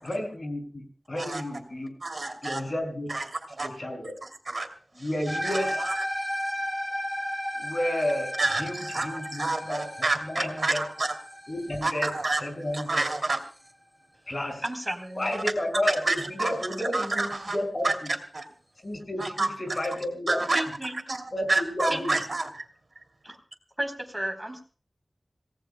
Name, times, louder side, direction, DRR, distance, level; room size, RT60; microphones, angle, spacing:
voice 1, 0.0-2.0 2.4-3.1 3.6-4.1 5.0-5.8 7.6-10.8 11.5-12.1 12.4-13.1 14.3-14.6 15.2-18.1 18.8-20.5 21.3-22.2, left 1 dB, 55° left, 4 dB, 6.0 m, -31 dB
voice 2, 2.0-2.6 3.1-3.2 3.6-3.7 4.5-4.7 5.4-5.6 8.4-11.1 11.8-12.4 12.9-13.4 16.0-16.5 16.9-17.6 17.8-17.9 18.3-18.4 19.2-19.5 20.3-20.6 21.5-22.5, right 2 dB, 65° right, 6 dB, 2.7 m, -28 dB
sound 1, 5.3-13.7, equal, 5° left, 2.6 m, -34 dB
voice 3, 14.6-15.3 20.5-21.0 21.9-22.1 23.2-23.4 23.8-24.6, right 1 dB, 15° right, 4 dB, 3.9 m, -33 dB
27.0 x 18.0 x 2.2 m, 0.39 s
wide cardioid pair, 60°, 0 cm